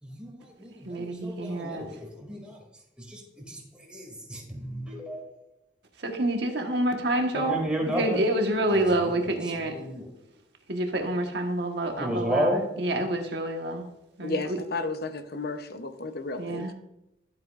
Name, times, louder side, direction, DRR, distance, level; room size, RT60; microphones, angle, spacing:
voice 1, 0.0-2.6 3.0-5.4 7.3-8.2 8.9-9.2 9.6-10.1 12.0-12.7, equal, 5° right, 2.6 m, -33 dB
voice 2, 0.8-1.9 6.0-7.6 7.9-9.7 10.7-13.9 14.2-14.6 16.4-16.7, right 1 dB, 65° right, 1.4 m, -28 dB
voice 3, 14.2-16.7, left 3 dB, 60° left, 0.8 m, -33 dB
12.0 x 8.0 x 2.5 m
head